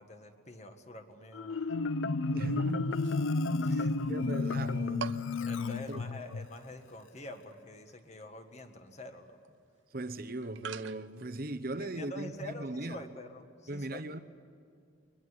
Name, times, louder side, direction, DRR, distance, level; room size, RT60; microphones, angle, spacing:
voice 1, 0.0-1.8 3.6-4.0 5.5-9.4 11.8-14.0, left 1 dB, 35° left, 1.8 m, -47 dB
Marimba xylophone, 1.3-6.5, left 3 dB, 75° left, 0.6 m, -32 dB
voice 2, 2.3-5.2 5.9-6.3 9.9-13.1 13.7-14.2, right 1 dB, 45° right, 1.0 m, -39 dB
sound 1, 2.6-3.7 4.0-4.1 4.5-4.6 5.0-11.3, right 7 dB, 65° right, 0.6 m, -46 dB
22.5 x 21.5 x 9.7 m
head